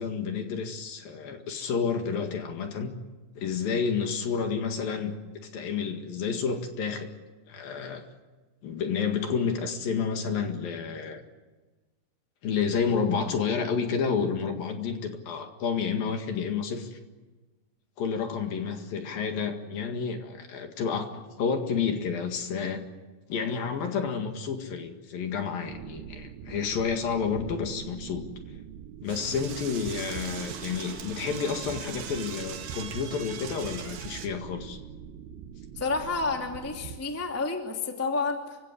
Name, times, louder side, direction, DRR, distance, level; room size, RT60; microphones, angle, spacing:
voice 1, 0.0-2.9 3.4-5.1 5.5-7.1 7.5-8.1 8.6-11.2 12.4-17.0 18.0-22.8 23.3-28.6 29.0-34.8, left 6 dB, 60° left, 5 dB, 3.4 m, -30 dB
sound 1, 25.7-37.0, right 8 dB, 85° right, 3.6 m, -43 dB
Door / Toilet flush, 29.1-34.3, right 8 dB, 60° right, 3.1 m, -40 dB
voice 2, 35.7-38.6, left 4 dB, 5° left, 3 dB, 1.2 m, -30 dB
28.5 x 16.5 x 9.8 m, 1.2 s
omnidirectional pair, 5.2 m